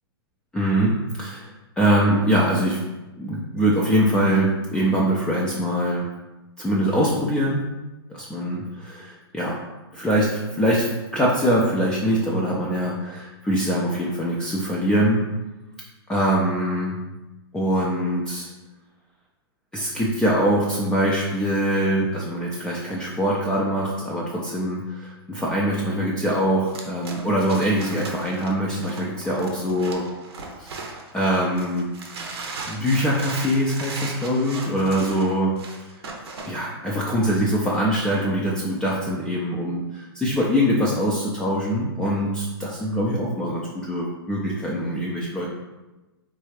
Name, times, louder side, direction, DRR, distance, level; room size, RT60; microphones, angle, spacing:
voice 1, 0.5-1.5 1.8-2.8 3.2-6.0 6.6-7.6 8.1-9.6 9.9-10.9 11.1-15.2 16.1-17.0 17.5-18.5 19.7-30.0 30.6-30.7 31.1-31.9 32.7-35.5 36.5-45.5, equal, 5° left, -5 dB, 0.4 m, -23 dB
sound 1, 26.7-31.2 31.6-36.6, right 3 dB, 75° right, 0.7 m, -36 dB
4.1 x 2.3 x 3.1 m, 1.1 s
hypercardioid pair, 130°, 13 cm